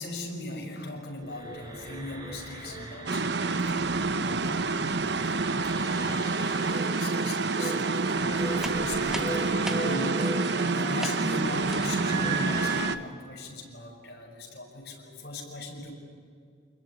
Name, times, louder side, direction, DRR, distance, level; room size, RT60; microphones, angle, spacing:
voice 1, 0.0-15.9, left 2 dB, 55° left, 0 dB, 6.5 m, -39 dB
sound 1, 1.2-12.8, right 2 dB, 20° right, 4.8 m, -37 dB
sound 2, 3.1-13.0, right 3 dB, 70° right, 1.0 m, -28 dB
sound 3, 8.6-10.6 10.9-11.3 11.6-12.0, equal, 5° right, 1.5 m, -40 dB
27.0 x 21.5 x 9.8 m, 2.2 s
head